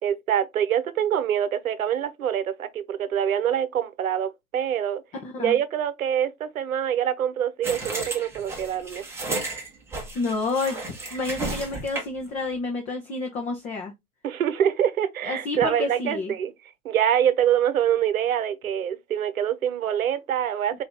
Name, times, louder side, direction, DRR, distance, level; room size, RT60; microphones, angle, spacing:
voice 1, 0.0-5.0 5.4-9.0 14.2-16.5 16.8-20.8, right 9 dB, 65° right, 1.0 m, -25 dB
voice 2, 5.2-5.6 10.1-10.8 11.1-13.9 15.2-16.3, left 3 dB, 15° left, 0.7 m, -29 dB
sound 1, 7.6-12.3, right 2 dB, 5° right, 1.0 m, -33 dB
5.6 x 2.7 x 3.4 m
hypercardioid pair, 125°, 45 cm